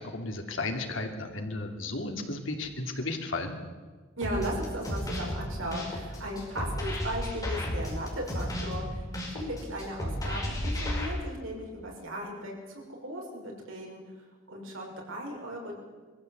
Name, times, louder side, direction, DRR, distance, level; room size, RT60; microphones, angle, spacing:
voice 1, 0.0-3.6, left 2 dB, 65° left, 4 dB, 2.7 m, -34 dB
sound 1, 4.2-11.1, equal, 20° left, 5.4 m, -33 dB
voice 2, 4.2-9.1 9.3-14.0 14.5-15.8, equal, 70° right, -1 dB, 6.2 m, -37 dB
23.0 x 15.0 x 8.1 m, 1.4 s
head